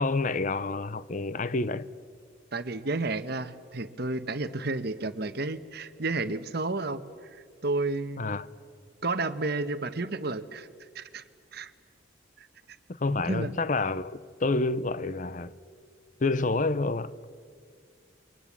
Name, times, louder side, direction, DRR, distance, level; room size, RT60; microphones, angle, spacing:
voice 1, 0.0-1.9 8.2-8.5 13.0-15.5 16.2-17.1, left 3 dB, 40° left, 0.6 m, -28 dB
voice 2, 2.5-7.0 7.6-8.3 9.0-10.7 10.9-11.2 11.5-11.7 12.4-12.5 13.3-13.6, right 3 dB, 50° right, 1.1 m, -31 dB
28.0 x 23.5 x 7.4 m
head